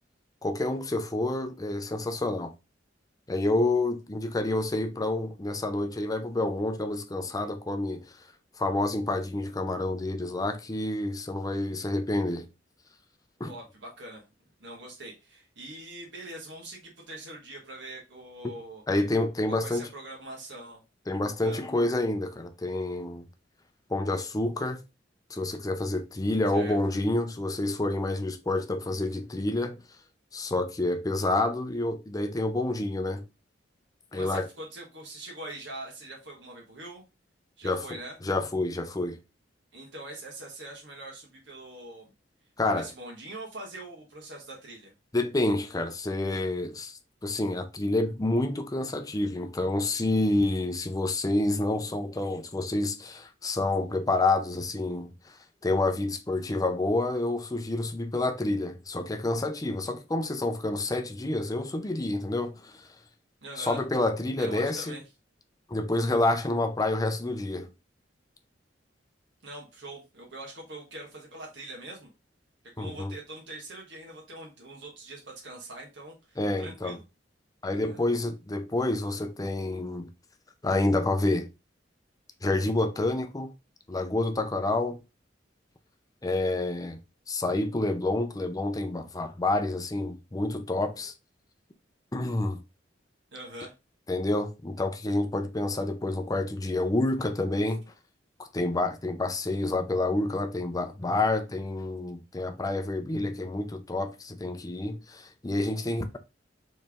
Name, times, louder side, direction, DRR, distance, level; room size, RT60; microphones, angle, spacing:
voice 1, 0.4-2.5 3.3-8.1 8.6-12.5 13.4-13.5 18.9-19.9 21.1-23.3 23.9-24.8 25.3-29.8 30.3-33.2 34.1-34.5 37.6-39.2 42.6-42.9 45.1-55.4 55.6-62.9 63.6-65.0 65.7-67.7 72.8-73.2 76.4-77.0 77.6-80.1 80.6-81.5 82.4-83.5 83.9-85.0 86.2-87.0 87.3-91.1 92.1-92.6 94.1-97.8 98.4-106.2, left 2 dB, 20° left, 0.6 m, -28 dB
voice 2, 13.4-14.2 14.6-18.8 19.5-20.8 21.4-21.6 26.5-26.8 34.1-37.0 37.6-38.2 39.7-42.1 42.7-44.9 63.4-63.8 64.4-65.0 69.4-72.1 72.8-77.0 77.6-78.0 93.3-93.7, right 1 dB, 75° right, 1.6 m, -43 dB
4.5 x 3.3 x 3.6 m
head